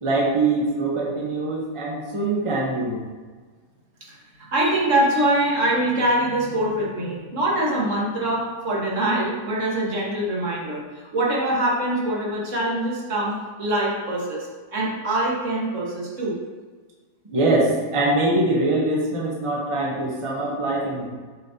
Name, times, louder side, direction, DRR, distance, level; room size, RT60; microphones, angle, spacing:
voice 1, 0.0-3.0 17.3-21.1, right 2 dB, 25° right, -3 dB, 0.9 m, -23 dB
voice 2, 4.5-16.4, right 1 dB, 50° right, -4 dB, 1.8 m, -24 dB
7.2 x 6.8 x 2.8 m, 1.5 s
omnidirectional pair, 1.7 m